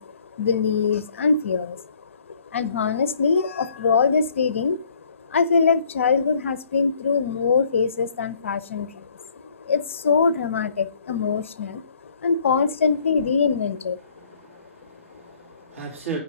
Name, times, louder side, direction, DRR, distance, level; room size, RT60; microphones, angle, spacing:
voice 1, 0.0-1.9 2.3-4.8 5.1-14.0, left 5 dB, 65° left, 17 dB, 0.6 m, -23 dB
voice 2, 14.1-16.2, right 5 dB, 75° right, -2 dB, 2.8 m, -36 dB
9.2 x 6.2 x 5.1 m, 0.35 s
figure-of-eight pair, 100°, 7 cm